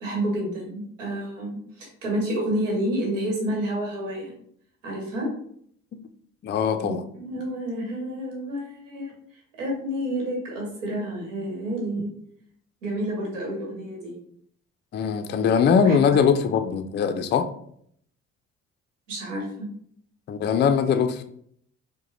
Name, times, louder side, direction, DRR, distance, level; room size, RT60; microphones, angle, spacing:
voice 1, 0.0-4.3 4.8-5.3 6.8-9.1 9.5-12.1 12.8-14.2 15.8-16.4 19.1-19.7, right 1 dB, 90° right, 1.1 m, -29 dB
voice 2, 6.4-7.0 14.9-17.5 20.3-21.2, left 6 dB, 30° left, 0.4 m, -21 dB
4.7 x 2.2 x 3.1 m
hypercardioid pair, 50°, 37 cm